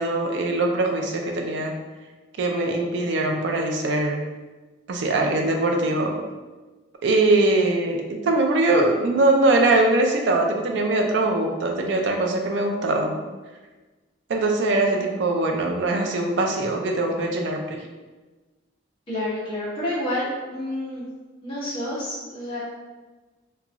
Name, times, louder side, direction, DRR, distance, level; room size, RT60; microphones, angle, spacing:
voice 1, 0.0-1.7 2.4-4.2 4.9-6.2 7.0-13.2 14.3-17.8, right 2 dB, 70° right, 2 dB, 0.4 m, -22 dB
voice 2, 19.1-20.3 20.5-21.1 21.4-22.6, left 1 dB, 25° left, -9 dB, 0.7 m, -29 dB
2.9 x 2.3 x 2.4 m, 1.3 s
head